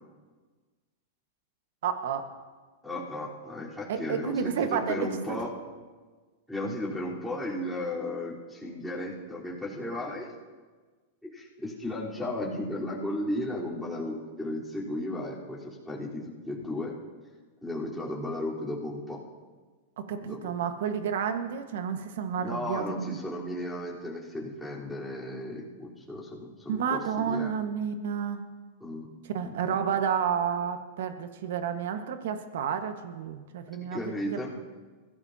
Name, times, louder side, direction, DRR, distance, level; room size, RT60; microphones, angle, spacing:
voice 1, 1.8-2.2 3.9-5.4 20.0-23.2 26.7-28.4 29.3-34.0 34.3-34.4, right 7 dB, 75° right, 7 dB, 1.5 m, -30 dB
voice 2, 2.8-5.5 6.5-10.3 11.2-16.9 17.6-19.2 20.3-20.4 22.4-27.5 28.8-29.1 29.4-29.5 33.9-34.5, left 1 dB, ahead, -8 dB, 3.9 m, -35 dB
23.0 x 16.0 x 2.9 m, 1.4 s
supercardioid pair, 135°, 0 cm